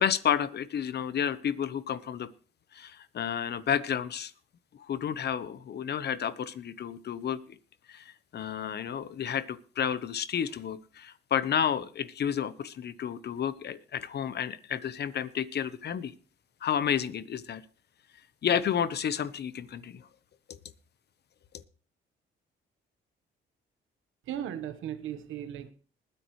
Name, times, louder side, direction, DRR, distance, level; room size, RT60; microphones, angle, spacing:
voice 1, 0.0-2.3 2.7-4.3 4.7-7.6 7.9-16.1 16.6-17.6 18.4-20.0 20.5-20.6, left 8 dB, 55° left, 15 dB, 1.0 m, -31 dB
voice 2, 24.3-25.7, right 10 dB, 85° right, 10 dB, 1.4 m, -36 dB
20.5 x 10.0 x 3.2 m, 0.41 s
cardioid pair, 90°, 20 cm